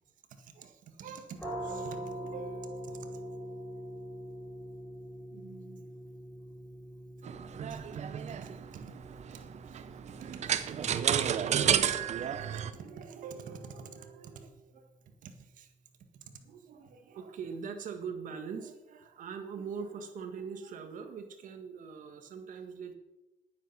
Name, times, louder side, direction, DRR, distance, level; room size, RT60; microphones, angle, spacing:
voice 1, 0.3-3.5 5.3-5.9 7.7-8.0 8.3-15.7 16.0-22.9, right 6 dB, 75° right, 7 dB, 1.7 m, -45 dB
sound 1, 1.4-12.9, right 1 dB, 10° left, 5.5 m, -44 dB
sound 2, 7.2-12.7, right 9 dB, 55° right, 0.8 m, -31 dB
11.0 x 9.6 x 5.9 m, 0.98 s
cardioid pair, 105°, 14 cm